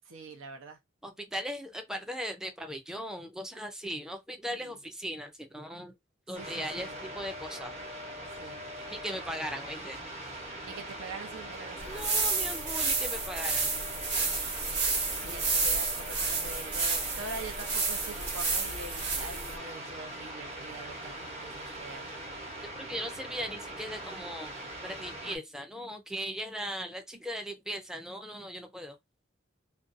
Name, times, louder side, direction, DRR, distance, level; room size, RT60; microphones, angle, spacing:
voice 1, 0.1-0.8 4.5-4.8 6.4-6.9 8.4-8.6 10.6-12.1 15.2-22.1, right 3 dB, 80° right, 0.8 m, -44 dB
voice 2, 1.0-5.9 6.3-7.8 8.9-10.0 11.9-13.7 15.3-15.4 22.7-24.5 24.8-29.0, equal, 5° right, 0.4 m, -38 dB
sound 1, 6.3-25.4, right 1 dB, 35° right, 0.9 m, -42 dB
sound 2, 11.8-19.6, right 4 dB, 60° right, 1.1 m, -30 dB
2.6 x 2.2 x 2.5 m
head